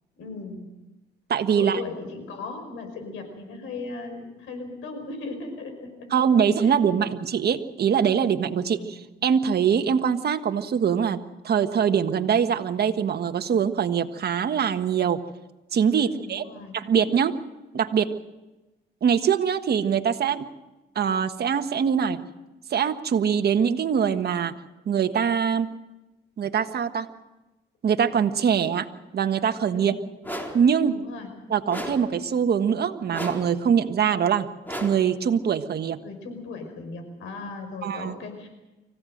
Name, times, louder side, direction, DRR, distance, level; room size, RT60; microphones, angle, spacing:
voice 1, 0.2-0.6 1.5-7.1 8.6-8.9 16.0-16.7 29.7-30.0 30.8-31.3 36.0-38.5, left 3 dB, 90° left, 6 dB, 5.5 m, -38 dB
voice 2, 1.3-1.8 6.1-15.2 15.7-16.4 16.7-17.4 17.7-18.1 19.0-20.5 20.9-22.2 22.7-24.5 24.8-25.7 26.4-27.1 27.8-28.9 29.1-29.9 30.5-31.0 31.5-34.5 34.8-36.0 37.8-38.1, right 7 dB, 55° right, 8 dB, 1.5 m, -23 dB
sound 1, 30.2-30.7 31.7-32.2 33.1-33.6 34.7-35.1, equal, 10° left, 3.8 m, -34 dB
25.0 x 16.0 x 7.9 m, 1.1 s
cardioid pair, 90°, 20 cm